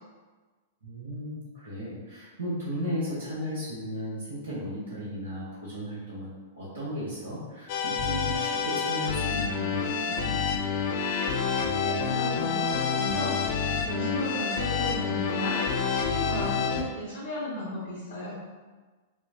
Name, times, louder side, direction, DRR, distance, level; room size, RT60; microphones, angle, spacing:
voice 1, 0.8-6.3 6.5-10.5, equal, 85° right, -9 dB, 1.0 m, -35 dB
sound 1, 7.7-16.8, left 6 dB, 50° left, 0.4 m, -28 dB
voice 2, 11.8-13.3 13.8-15.6 15.9-18.3, left 1 dB, 70° left, -10 dB, 1.3 m, -34 dB
5.5 x 2.1 x 2.5 m, 1.3 s
figure-of-eight pair, 100°, 0 cm